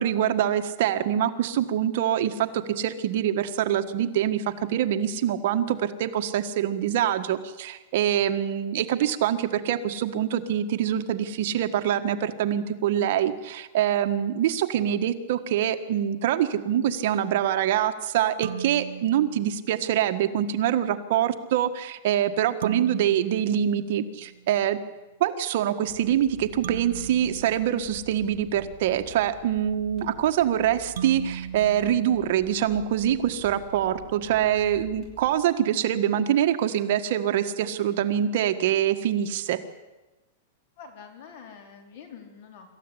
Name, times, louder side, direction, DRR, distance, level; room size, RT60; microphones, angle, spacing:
voice 1, 0.0-24.8 25.2-39.6, right 10 dB, 55° right, 7 dB, 1.6 m, -25 dB
sound 1, 18.4-20.1 22.6-24.6 26.6-28.8 31.0-33.0, right 8 dB, 85° right, 1.0 m, -39 dB
sound 2, 25.9-35.3, right 1 dB, 10° left, 6.6 m, -48 dB
voice 2, 40.8-42.7, left 6 dB, 50° left, 5 dB, 4.3 m, -46 dB
25.5 x 14.5 x 9.9 m, 1.1 s
supercardioid pair, 160°, 0 cm